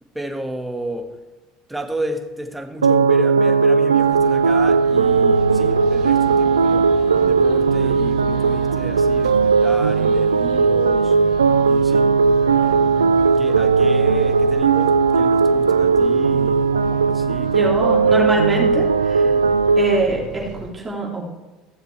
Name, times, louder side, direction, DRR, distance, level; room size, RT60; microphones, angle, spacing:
voice 1, 0.0-1.2 1.7-11.2 11.6-12.2 12.6-17.7 19.2-19.5, right 1 dB, 5° right, 1.7 m, -32 dB
sound 1, 2.8-20.0, right 5 dB, 90° right, 0.3 m, -17 dB
sound 2, 3.9-20.7, right 5 dB, 60° right, 1.5 m, -37 dB
voice 2, 17.5-19.3 19.8-21.3, right 2 dB, 25° right, 3.5 m, -24 dB
16.0 x 7.3 x 3.4 m
hypercardioid pair, 70°, 0 cm